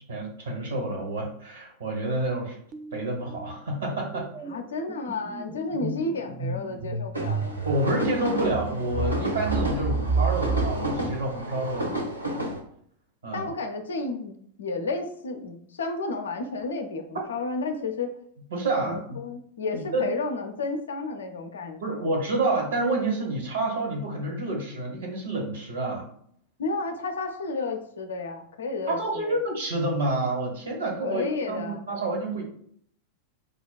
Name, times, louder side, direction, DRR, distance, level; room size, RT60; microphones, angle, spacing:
voice 1, 0.1-2.6 2.9-4.3 7.6-11.9 13.2-13.5 18.5-19.2 19.7-20.0 21.8-26.0 28.9-32.4, right 2 dB, 65° right, -1 dB, 1.2 m, -28 dB
sound 1, 2.7-3.0 3.3-12.1, right 3 dB, 25° right, 0.3 m, -31 dB
voice 2, 4.5-7.7 13.3-18.1 18.8-22.1 26.6-29.4 31.0-31.8, left 3 dB, 70° left, 5 dB, 0.4 m, -32 dB
sound 2, 7.1-12.6, right 1 dB, 85° right, 0.7 m, -31 dB
5.1 x 2.2 x 2.2 m, 0.64 s
figure-of-eight pair, 90°, 0 cm